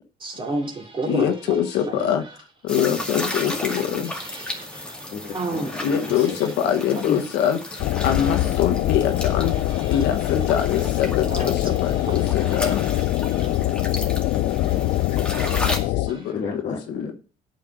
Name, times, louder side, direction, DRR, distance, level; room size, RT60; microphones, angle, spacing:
voice 1, 0.2-1.6 1.9-2.1 3.0-3.1 4.0-4.9 5.2-5.7 9.7-10.0 11.3-13.7 14.6-14.8 15.3-15.7 16.1-16.2, right 3 dB, 30° right, 2.9 m, -33 dB
voice 2, 1.1-2.2 2.6-4.1 5.8-9.6 9.9-12.9 15.9-16.4 16.9-17.0, left 9 dB, 85° left, 1.2 m, -24 dB
sound 1, 2.7-15.8, left 1 dB, 5° left, 2.1 m, -34 dB
voice 3, 5.1-6.5 7.0-7.2 9.8-9.9 10.2-10.6 11.0-11.3 13.2-14.0 14.3-16.0 16.3-17.1, left 6 dB, 50° left, 2.0 m, -34 dB
sound 2, 7.8-16.1, left 16 dB, 70° left, 0.4 m, -23 dB
8.5 x 5.6 x 7.9 m
cardioid pair, 110°, 17 cm